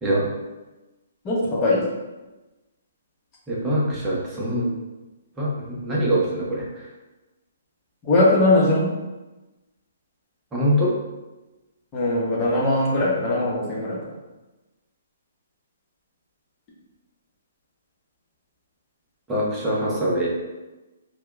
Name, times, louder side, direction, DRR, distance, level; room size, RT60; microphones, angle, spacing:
voice 1, 1.2-1.8 8.0-8.9 11.9-14.0, left 2 dB, 25° left, -5 dB, 1.0 m, -20 dB
voice 2, 3.5-4.7 5.4-6.7 10.5-10.9 19.3-20.3, equal, 10° right, -6 dB, 0.9 m, -23 dB
4.7 x 2.3 x 2.4 m, 1.1 s
hypercardioid pair, 135°, 0 cm